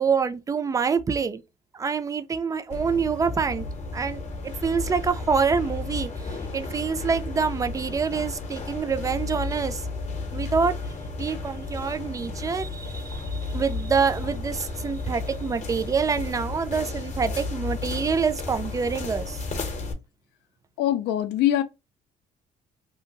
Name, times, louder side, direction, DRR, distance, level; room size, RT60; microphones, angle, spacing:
voice 1, 0.0-1.4 1.7-3.6 3.9-9.8 10.3-10.8 11.2-19.4, right 5 dB, 20° right, 0.4 m, -26 dB
sound 1, 2.7-19.9, left 3 dB, 40° left, 0.7 m, -33 dB
voice 2, 20.8-21.6, left 12 dB, 80° left, 0.4 m, -23 dB
2.7 x 2.4 x 2.8 m
cardioid pair, 110°, 17 cm